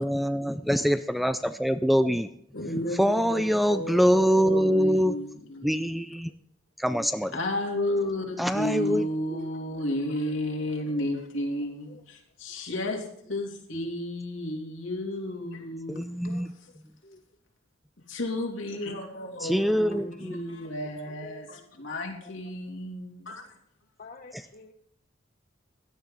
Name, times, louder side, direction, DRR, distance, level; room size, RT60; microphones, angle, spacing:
voice 1, 0.0-2.3 3.0-5.2 5.6-6.3 6.8-7.3 8.4-9.5 15.9-16.5 19.4-20.4 24.3-24.4, equal, ahead, 11 dB, 0.4 m, -24 dB
voice 2, 2.5-3.4 3.7-6.0 7.3-16.0 18.1-23.5, left 1 dB, 75° left, 0 dB, 3.0 m, -32 dB
voice 3, 10.7-11.1 11.9-12.0 16.2-17.2 20.0-20.1 20.6-20.8 21.1-21.4 22.2-22.5 24.0-24.7, left 3 dB, 45° left, 4 dB, 0.9 m, -50 dB
16.5 x 11.5 x 3.9 m, 0.74 s
head